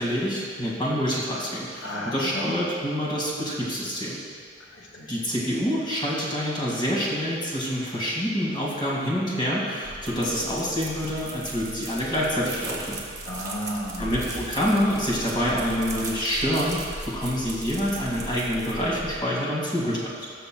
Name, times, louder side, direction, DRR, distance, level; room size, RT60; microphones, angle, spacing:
voice 1, 0.0-4.2 5.1-13.0 14.0-20.1, equal, 25° left, -5 dB, 2.0 m, -26 dB
voice 2, 1.8-2.5 4.7-5.1 13.2-14.2, left 1 dB, 85° left, -2 dB, 1.7 m, -33 dB
sound 1, 9.8-19.2, right 2 dB, 20° right, 1.2 m, -38 dB
18.5 x 6.7 x 2.3 m, 2.1 s
head